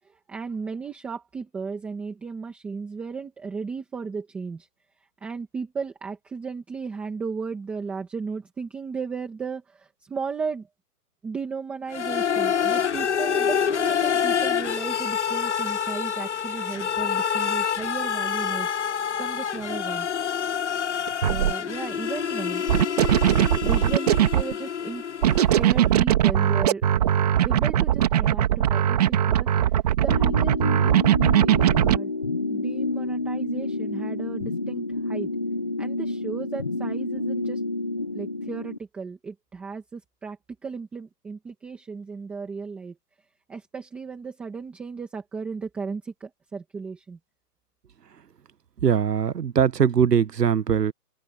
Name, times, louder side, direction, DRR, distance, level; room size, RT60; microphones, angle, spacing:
voice 1, 0.0-4.7 5.2-10.7 11.2-18.7 19.2-20.1 21.3-22.8 23.6-25.0 25.5-26.8 27.4-32.1 32.5-35.3 35.8-37.6 38.1-43.0 43.5-47.2, right 5 dB, 5° right, 1.4 m, -35 dB
sound 1, 11.9-25.8, left 8 dB, 45° left, 1.2 m, -27 dB
sound 2, 21.1-21.5 22.7-24.5 25.2-32.0, right 11 dB, 25° right, 2.3 m, -20 dB
sound 3, 30.1-38.8, left 2 dB, 20° left, 0.8 m, -29 dB
voice 2, 48.8-50.9, right 7 dB, 75° right, 1.3 m, -21 dB
open air
hypercardioid pair, 170°, 48 cm